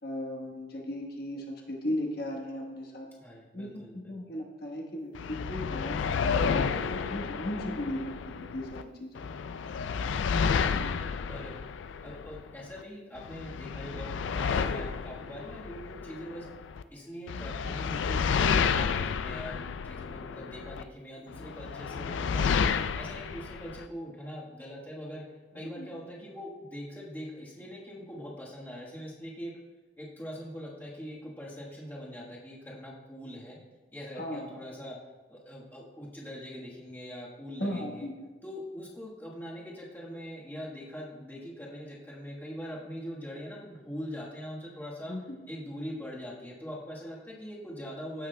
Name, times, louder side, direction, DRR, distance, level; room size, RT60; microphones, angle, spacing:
voice 1, 0.0-3.1 3.5-3.8 4.1-9.1 25.5-25.8 34.1-34.6 37.6-38.1 45.1-45.4, left 1 dB, 55° left, 0 dB, 1.2 m, -36 dB
voice 2, 3.2-4.2 10.6-11.6 11.9-16.5 16.9-22.6 22.9-25.2 25.5-29.5 30.0-33.6 33.9-35.0 35.3-38.1 38.4-45.1 45.5-48.3, equal, 10° left, -5 dB, 1.3 m, -42 dB
sound 1, 5.1-8.8 9.1-12.8 13.2-16.8 17.3-20.8 21.3-23.9, left 6 dB, 90° left, 0.4 m, -31 dB
15.0 x 6.0 x 2.2 m, 1.3 s
head